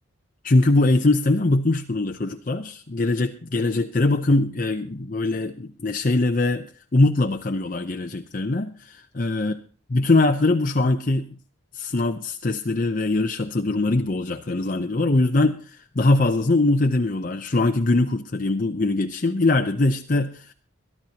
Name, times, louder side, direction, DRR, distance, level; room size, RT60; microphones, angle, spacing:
voice 1, 0.4-6.7 6.9-9.5 9.9-11.4 11.7-20.5, left 2 dB, 40° left, 4 dB, 0.7 m, -22 dB
22.5 x 12.0 x 2.9 m, 0.40 s
head